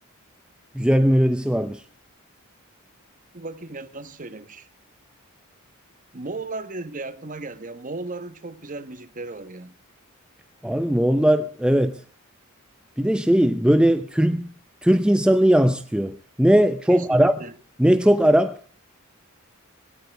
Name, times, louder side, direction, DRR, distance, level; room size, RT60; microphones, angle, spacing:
voice 1, 0.7-1.8 10.6-12.0 13.0-14.5 14.8-17.3 17.8-18.6, equal, 5° right, 0.6 m, -19 dB
voice 2, 3.3-4.7 6.1-9.7 16.9-17.5, right 3 dB, 35° right, 1.2 m, -35 dB
18.5 x 18.0 x 3.4 m
head